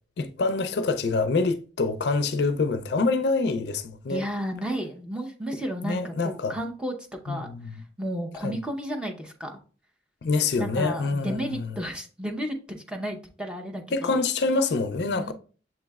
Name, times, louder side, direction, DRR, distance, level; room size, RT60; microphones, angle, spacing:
voice 1, 0.2-4.2 5.8-6.6 7.3-7.8 8.4-8.6 10.2-11.7 13.9-15.3, left 3 dB, 65° left, 0.4 m, -26 dB
voice 2, 4.1-7.0 7.2-7.5 8.0-9.6 10.6-14.2 15.1-15.3, equal, 5° right, 0.6 m, -32 dB
7.2 x 3.0 x 2.3 m
head